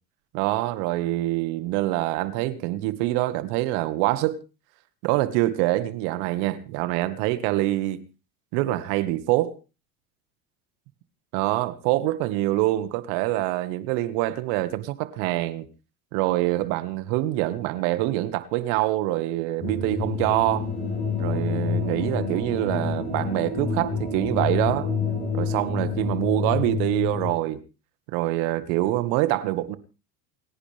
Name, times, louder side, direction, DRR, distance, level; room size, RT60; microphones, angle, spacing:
voice 1, 0.3-4.4 5.0-8.0 8.5-9.6 11.3-15.7 16.1-20.7 21.2-24.9 25.3-27.6 28.1-29.8, right 16 dB, 60° right, 1.9 m, -25 dB
sound 1, 19.6-27.3, left 5 dB, 20° left, 5.5 m, -28 dB
29.0 x 9.9 x 3.5 m
supercardioid pair, 105°, 42 cm